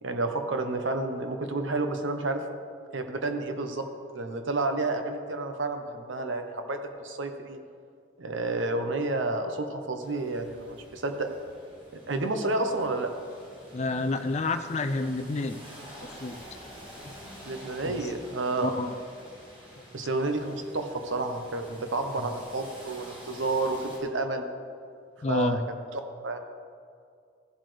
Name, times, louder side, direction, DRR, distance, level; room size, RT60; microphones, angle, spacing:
voice 1, 0.0-2.4 2.9-3.9 4.1-7.6 8.2-11.3 12.1-13.1 17.5-18.7 19.9-24.5 25.3-25.6 25.9-26.4, right 2 dB, 90° right, 6 dB, 0.9 m, -30 dB
sound 1, 10.0-24.0, equal, 25° right, 2.1 m, -48 dB
voice 2, 13.7-15.6 16.0-16.4 17.0-17.1 17.8-18.1 18.6-19.0 22.2-22.3 25.2-25.6, left 2 dB, 35° left, 8 dB, 0.4 m, -29 dB
15.0 x 7.7 x 3.3 m, 2.3 s
head